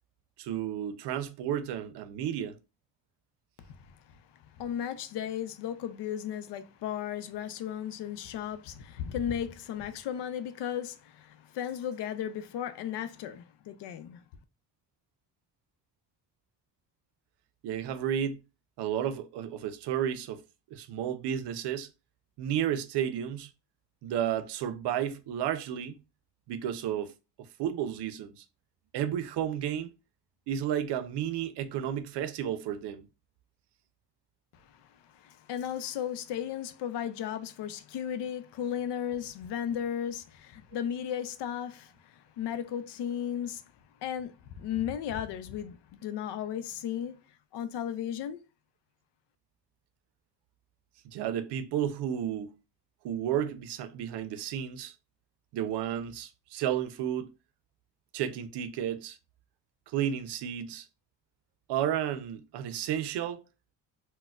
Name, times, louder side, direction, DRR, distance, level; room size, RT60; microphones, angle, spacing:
voice 1, 0.4-2.6 17.6-18.4 18.8-20.4 20.7-21.9 22.4-23.5 24.0-26.0 26.5-27.1 27.4-28.4 28.9-29.9 30.5-33.1 51.0-52.6 53.0-54.9 55.5-57.3 58.1-59.2 59.9-60.9 61.7-63.4, right 10 dB, 85° right, 0.5 m, -32 dB
voice 2, 3.6-14.2 34.5-43.6 44.0-47.2 47.5-48.4, left 9 dB, 85° left, 0.5 m, -35 dB
4.1 x 2.1 x 2.3 m
cardioid pair, 85°, 40 cm